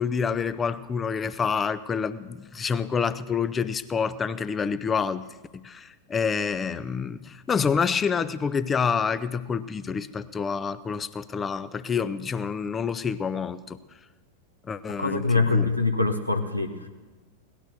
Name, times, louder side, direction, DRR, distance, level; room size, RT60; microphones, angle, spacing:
voice 1, 0.0-5.2 5.5-13.8 14.7-15.7, left 6 dB, 20° left, 14 dB, 0.7 m, -28 dB
voice 2, 15.0-16.7, left 3 dB, 85° left, 6 dB, 1.2 m, -23 dB
18.0 x 12.0 x 6.3 m, 1.3 s
figure-of-eight pair, 90°, 0 cm